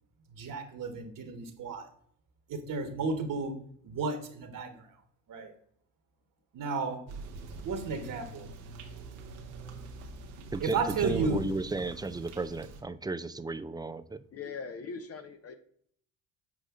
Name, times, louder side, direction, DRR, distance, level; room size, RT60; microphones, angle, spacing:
voice 1, 0.4-1.9 2.5-3.6 3.8-4.8 5.3-5.5 6.5-7.0 7.6-8.5 10.6-11.4, right 4 dB, 50° right, 7 dB, 1.4 m, -33 dB
sound 1, 7.1-12.8, right 4 dB, 80° right, 1.2 m, -42 dB
voice 2, 10.5-14.2, right 3 dB, 10° right, 13 dB, 0.3 m, -34 dB
voice 3, 14.3-15.6, left 5 dB, 35° left, 8 dB, 0.7 m, -40 dB
7.8 x 4.9 x 3.7 m, 0.65 s
hypercardioid pair, 60°, 40 cm